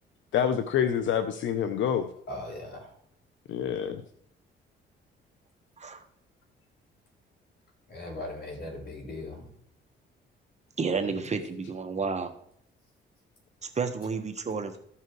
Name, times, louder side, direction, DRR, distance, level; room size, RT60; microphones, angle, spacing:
voice 1, 0.3-2.1 3.5-4.0, left 8 dB, 75° left, 10 dB, 0.8 m, -27 dB
voice 2, 2.3-2.8 7.9-9.5, left 2 dB, 50° left, 0 dB, 5.0 m, -38 dB
voice 3, 10.8-12.3 13.7-14.7, right 5 dB, 35° right, 6 dB, 1.3 m, -30 dB
14.5 x 5.7 x 4.7 m, 0.69 s
cardioid pair, 90°, 20 cm